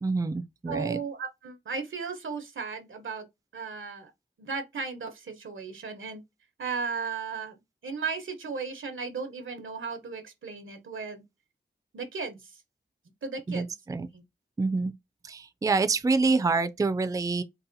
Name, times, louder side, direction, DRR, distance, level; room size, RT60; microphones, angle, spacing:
voice 1, 0.0-1.0 13.5-14.1 14.6-14.9 15.3-17.4, right 3 dB, 20° right, 0.3 m, -26 dB
voice 2, 0.7-3.3 3.5-4.1 4.4-6.2 6.6-11.2 11.9-12.5 13.2-13.7 14.1-14.2, right 5 dB, 90° right, 0.9 m, -35 dB
4.1 x 2.2 x 2.6 m
wide cardioid pair, 70°, 20 cm